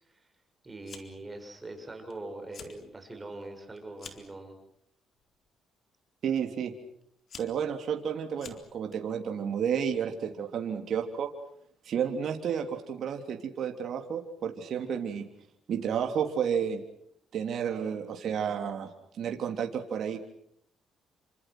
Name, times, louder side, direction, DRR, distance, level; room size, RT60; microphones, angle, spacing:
voice 1, 0.6-4.6, right 2 dB, 20° right, 4 dB, 6.8 m, -42 dB
Fire, 0.8-1.3 1.6-2.1 2.4-2.8 3.2-4.4 5.1-5.5 6.4-6.5 7.0-9.0, left 6 dB, 55° left, 4.0 m, -48 dB
voice 2, 6.2-6.7 7.4-11.3 11.8-15.2 15.7-16.8 17.3-20.2, right 7 dB, 65° right, 4 dB, 3.4 m, -31 dB
29.5 x 26.0 x 6.3 m, 0.68 s
cardioid pair, 90°, 0 cm